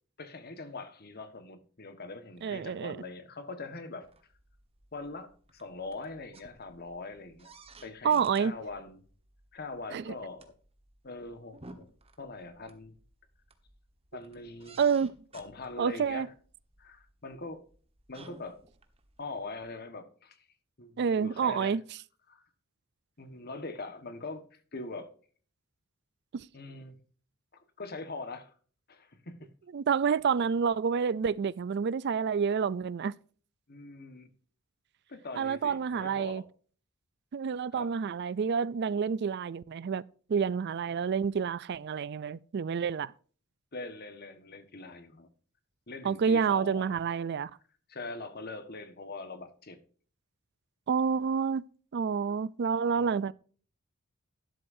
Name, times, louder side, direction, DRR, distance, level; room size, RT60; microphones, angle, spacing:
voice 1, 0.2-4.1 4.9-7.5 7.8-9.0 9.5-10.5 11.0-11.9 12.2-12.9 14.1-14.8 15.3-16.3 16.8-17.6 18.1-18.6 19.2-20.5 20.8-21.8 22.3-22.4 23.2-24.4 24.7-25.1 26.5-27.0 27.5-28.5 28.9-29.5 33.7-34.3 35.1-36.4 37.7-37.9 43.7-45.3 45.9-47.0 47.9-49.8 52.9-53.2, left 3 dB, 45° left, 1.5 m, -42 dB
voice 2, 2.4-3.0 8.0-8.5 9.9-10.1 14.8-15.1 15.8-16.3 21.0-21.8 26.3-26.4 29.7-33.1 35.4-36.4 37.3-40.0 40.3-43.1 46.0-47.5 50.9-51.6 51.9-53.3, right 6 dB, 50° right, 0.4 m, -28 dB
sound 1, 4.0-19.7, right 2 dB, 30° right, 1.4 m, -57 dB
12.5 x 11.0 x 2.7 m
head